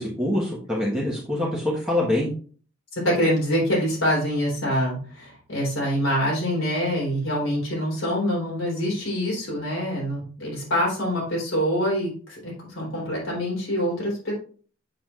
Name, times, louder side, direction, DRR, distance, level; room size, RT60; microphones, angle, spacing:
voice 1, 0.0-2.3, left 1 dB, 5° right, -5 dB, 1.2 m, -25 dB
voice 2, 2.9-14.3, equal, 85° left, -3 dB, 3.6 m, -25 dB
7.6 x 6.2 x 2.4 m, 0.41 s
head